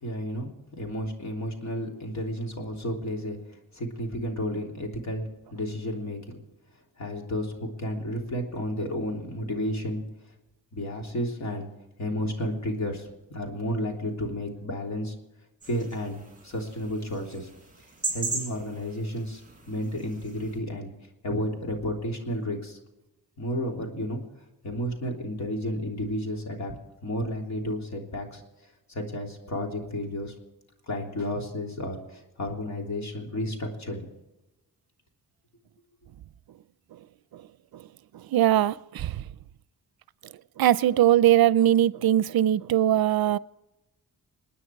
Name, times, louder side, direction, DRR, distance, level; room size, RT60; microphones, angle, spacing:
voice 1, 0.0-0.5 0.8-3.4 3.7-6.4 7.0-10.0 10.7-11.7 12.0-15.1 15.7-17.5 18.1-19.4 19.7-20.9 21.2-22.8 23.4-24.2 24.6-26.7 27.0-28.4 28.9-30.3 30.9-34.1, equal, 45° left, 3.3 m, -32 dB
sound 1, 15.6-20.6, right 3 dB, 20° right, 7.5 m, -38 dB
voice 2, 38.3-39.2 40.6-43.4, right 12 dB, 75° right, 0.6 m, -21 dB
28.0 x 9.7 x 4.7 m
wide cardioid pair, 170°, 37 cm